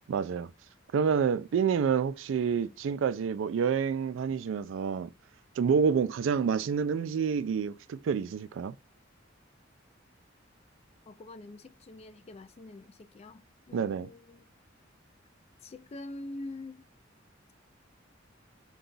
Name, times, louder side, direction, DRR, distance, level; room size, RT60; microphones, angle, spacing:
voice 1, 0.1-0.5 0.9-5.1 5.6-8.7 13.7-14.1, right 6 dB, 70° right, 0.3 m, -28 dB
voice 2, 11.1-13.4 13.7-14.4 15.6-16.9, left 2 dB, 30° left, 0.3 m, -45 dB
3.9 x 2.3 x 3.8 m
head